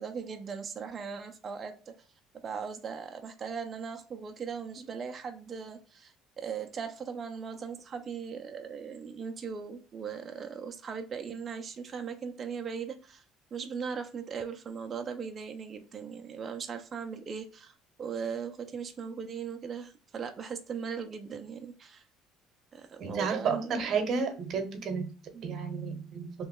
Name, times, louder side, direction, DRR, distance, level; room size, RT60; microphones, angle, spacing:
voice 1, 0.0-1.9 2.4-13.2 13.5-22.0 22.7-24.2 25.3-25.5, right 6 dB, 35° right, 5 dB, 0.4 m, -39 dB
voice 2, 23.0-25.1 25.4-26.3, right 5 dB, 50° right, 7 dB, 0.8 m, -31 dB
3.0 x 2.2 x 3.6 m, 0.35 s
cardioid pair, 125°, 0 cm